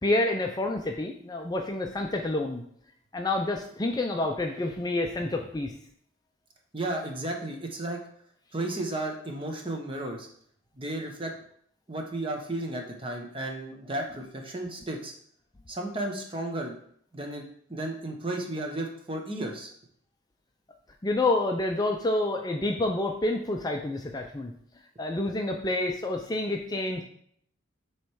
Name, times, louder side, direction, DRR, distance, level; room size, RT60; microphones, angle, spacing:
voice 1, 0.0-2.6 3.1-5.7 21.0-24.5 25.0-27.0, left 2 dB, 20° left, 3 dB, 0.4 m, -28 dB
voice 2, 6.7-8.0 8.5-10.3 10.8-11.3 11.9-15.1 15.7-16.8 17.1-17.4 17.7-19.7, right 1 dB, 25° right, 2 dB, 1.0 m, -33 dB
7.7 x 3.1 x 4.7 m, 0.66 s
head